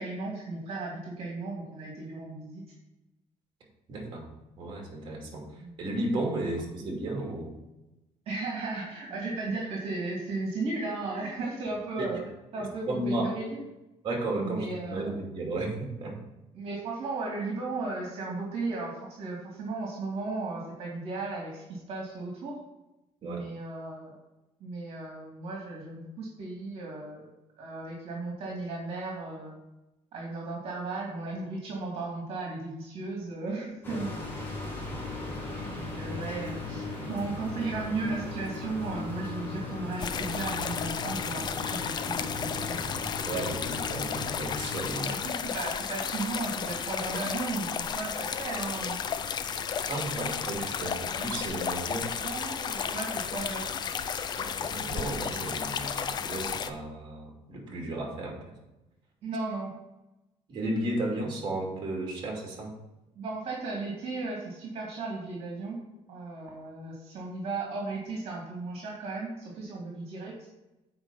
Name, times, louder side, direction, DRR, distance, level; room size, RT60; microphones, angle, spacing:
voice 1, 0.0-2.6 5.6-5.8 8.3-12.2 12.5-13.6 14.4-15.1 16.5-22.6 23.2-24.1 24.6-27.3 27.6-29.6 30.1-34.1 35.7-42.8 45.0-49.0 52.2-53.7 54.1-54.2 59.2-59.8 63.2-65.8 66.1-70.3, right 3 dB, 60° right, -2 dB, 2.3 m, -35 dB
voice 2, 3.9-4.3 4.6-7.5 12.6-13.3 14.0-16.2 23.2-23.5 43.3-45.1 49.9-52.1 54.4-58.5 60.5-62.7, right 2 dB, 45° right, -1 dB, 2.6 m, -34 dB
sound 1, 33.8-45.0, left 2 dB, 20° left, 2.4 m, -37 dB
sound 2, 40.0-56.7, left 7 dB, 40° left, 0.5 m, -33 dB
8.0 x 5.1 x 5.6 m, 0.97 s
cardioid pair, 140°, 11 cm